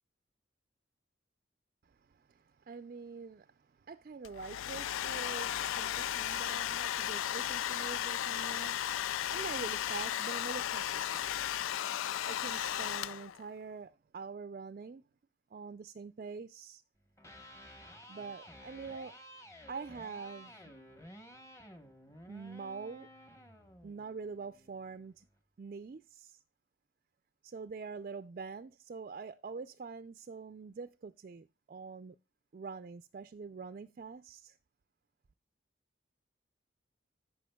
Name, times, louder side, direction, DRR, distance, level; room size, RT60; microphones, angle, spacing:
voice 1, 1.9-11.3 11.9-12.0 12.3-15.0 15.5-16.8 18.1-19.2 19.7-20.5 22.3-23.1 23.8-25.2 25.6-26.4 27.4-32.2 32.5-34.6, right 5 dB, 45° right, 0.3 m, -45 dB
Domestic sounds home sounds, 4.2-13.5, left 11 dB, 90° left, 0.3 m, -35 dB
Electric guitar, 17.1-25.2, equal, 15° left, 1.0 m, -54 dB
14.5 x 5.6 x 2.2 m
head